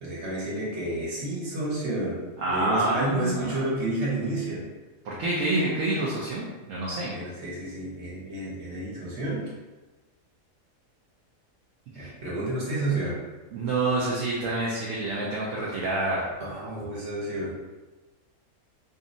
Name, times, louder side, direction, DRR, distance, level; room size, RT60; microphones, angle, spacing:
voice 1, 0.0-2.2 2.5-4.6 7.1-9.4 11.9-13.2 16.4-17.5, right 2 dB, 55° right, -6 dB, 1.3 m, -30 dB
voice 2, 2.4-3.5 5.0-7.1 11.9-12.1 13.5-16.3, right 2 dB, 70° right, -5 dB, 1.0 m, -27 dB
2.6 x 2.6 x 3.8 m, 1.2 s
omnidirectional pair, 1.5 m